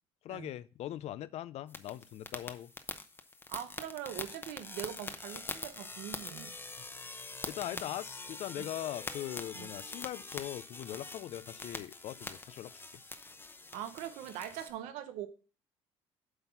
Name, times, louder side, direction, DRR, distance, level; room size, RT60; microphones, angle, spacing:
voice 1, 0.2-2.7 7.5-13.0, left 13 dB, 65° left, 0.5 m, -41 dB
sound 1, 1.7-14.7, left 3 dB, 20° left, 0.8 m, -44 dB
voice 2, 3.5-6.5 7.7-7.9 8.6-8.7 9.5-9.7 13.7-15.3, right 11 dB, 85° right, 0.9 m, -42 dB
7.9 x 4.0 x 5.7 m
supercardioid pair, 85°, 12 cm